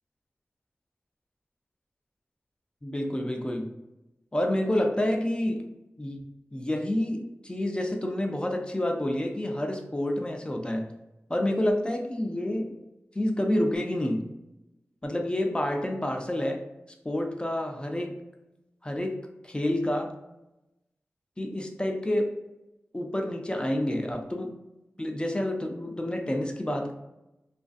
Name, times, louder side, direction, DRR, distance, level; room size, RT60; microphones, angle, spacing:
voice 1, 2.8-3.7 4.3-5.7 6.0-6.3 6.5-10.8 11.3-12.8 13.1-14.2 15.0-16.6 17.0-18.2 18.8-19.2 19.4-20.1 21.4-22.3 22.9-24.5 25.0-26.9, left 1 dB, 20° left, 3 dB, 0.4 m, -28 dB
2.5 x 2.4 x 2.3 m, 0.95 s
cardioid pair, 45°, 5 cm